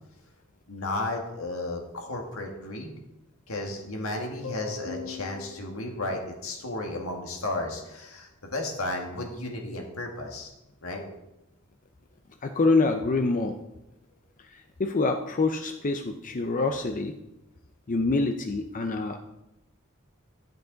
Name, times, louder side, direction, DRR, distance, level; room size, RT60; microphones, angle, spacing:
voice 1, 0.7-2.9 3.5-10.5 10.8-11.0, left 2 dB, 85° left, 2 dB, 1.8 m, -33 dB
voice 2, 12.4-13.6 14.5-17.1 17.9-19.2, left 3 dB, 40° left, 6 dB, 0.6 m, -26 dB
13.0 x 8.0 x 3.9 m, 0.93 s
head